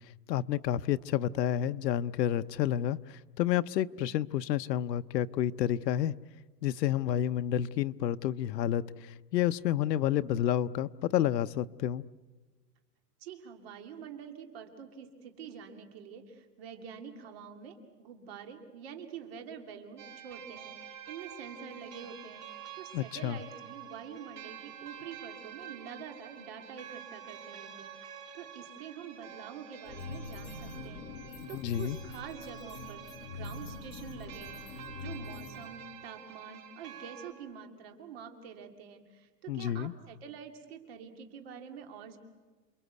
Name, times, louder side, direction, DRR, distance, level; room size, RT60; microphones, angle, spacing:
voice 1, 0.3-6.1 6.6-12.0 22.9-23.4 31.5-32.0 39.5-39.9, left 11 dB, 75° left, 13 dB, 0.8 m, -30 dB
voice 2, 13.2-22.4 22.7-31.0 31.5-42.2, right 7 dB, 35° right, 5 dB, 2.5 m, -46 dB
sound 1, 20.0-37.3, right 8 dB, 65° right, 3.9 m, -48 dB
sound 2, 29.8-35.7, left 4 dB, 35° left, 4.8 m, -44 dB
28.5 x 22.5 x 8.2 m, 1.3 s
supercardioid pair, 180°, 49 cm